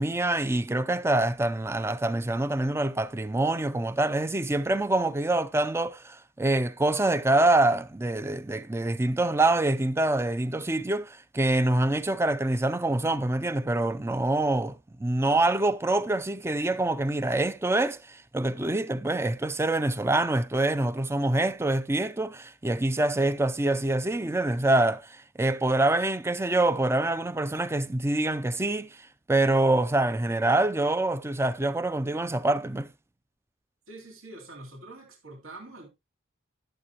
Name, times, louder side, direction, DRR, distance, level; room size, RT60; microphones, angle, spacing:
voice 1, 0.0-32.9, right 2 dB, 10° right, 0.4 m, -25 dB
voice 2, 33.9-35.9, right 2 dB, 70° right, 2.7 m, -45 dB
11.5 x 7.5 x 2.9 m
head